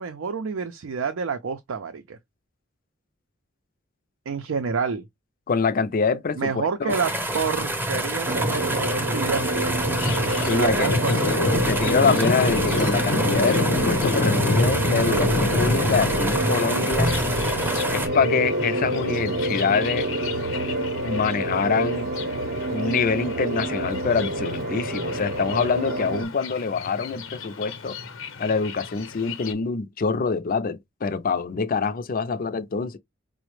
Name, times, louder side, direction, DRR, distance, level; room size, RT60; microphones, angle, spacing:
voice 1, 0.0-2.2 4.3-5.1 6.4-9.8 10.5-11.4, right 5 dB, 85° right, 0.5 m, -28 dB
voice 2, 5.5-7.0 10.5-10.9 11.7-17.1 17.9-20.1 21.0-22.1 22.7-28.0 28.4-33.0, left 5 dB, 45° left, 0.4 m, -25 dB
sound 1, 6.9-18.1, right 1 dB, 10° right, 0.6 m, -27 dB
sound 2, 8.2-26.3, right 1 dB, 45° right, 0.7 m, -28 dB
Thunder, 10.0-29.5, left 3 dB, 85° left, 0.8 m, -29 dB
4.8 x 2.1 x 3.1 m
head